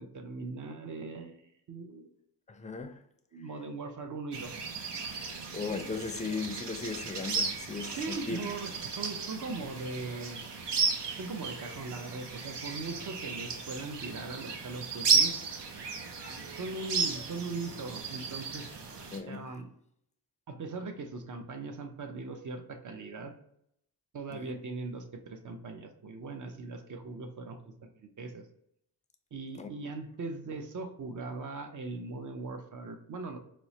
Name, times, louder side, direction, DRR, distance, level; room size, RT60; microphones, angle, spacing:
voice 1, 0.0-2.1 3.3-4.6 8.0-10.4 11.2-15.3 16.1-18.7 19.3-19.7 20.5-23.3 24.1-28.4 29.3-33.4, right 3 dB, 50° right, 0.7 m, -40 dB
voice 2, 2.5-3.0 5.2-8.4 19.1-19.5 24.3-24.5 29.6-29.7, left 4 dB, 20° left, 0.4 m, -37 dB
sound 1, 4.3-19.2, right 5 dB, 85° right, 0.7 m, -34 dB
4.4 x 2.1 x 2.7 m
wide cardioid pair, 85°, 40 cm